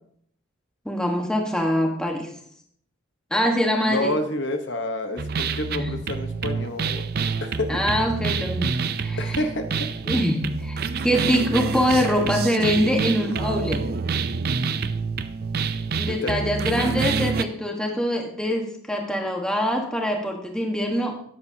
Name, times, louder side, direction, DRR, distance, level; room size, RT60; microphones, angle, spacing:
voice 1, 0.8-2.3 3.3-4.1 5.6-5.9 7.7-9.4 10.0-13.9 15.9-21.2, equal, 5° left, 1 dB, 1.3 m, -24 dB
voice 2, 3.8-7.1 7.4-7.8 9.2-9.9 16.1-16.8, left 1 dB, 55° left, 6 dB, 1.0 m, -29 dB
sound 1, 5.2-17.4, right 5 dB, 45° right, 0.4 m, -27 dB
13.5 x 9.7 x 2.8 m, 0.65 s
head